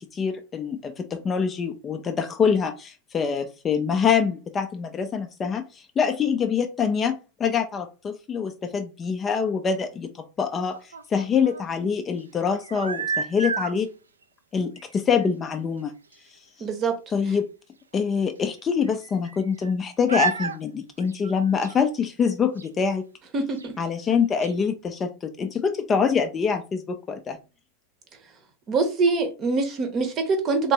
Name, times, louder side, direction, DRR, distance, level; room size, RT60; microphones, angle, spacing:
voice 1, 0.1-5.6 6.0-10.1 10.4-10.8 11.1-13.9 14.5-15.9 17.1-17.5 17.9-23.0 23.8-27.4, left 6 dB, 20° left, 0.4 m, -25 dB
sound 1, 10.6-11.6 12.5-13.8 14.8-14.9 15.2-15.3 15.8-15.9 16.1-16.2 17.9-18.0 18.8-19.7 20.1-20.6 21.0-21.8 22.6-22.7 23.6-23.7 24.1-24.2 24.4-24.5, right 5 dB, 75° right, 0.3 m, -31 dB
voice 2, 16.6-16.9 23.3-23.7 28.7-30.7, right 4 dB, 30° right, 0.8 m, -24 dB
3.3 x 2.9 x 2.8 m
figure-of-eight pair, 90°, 0 cm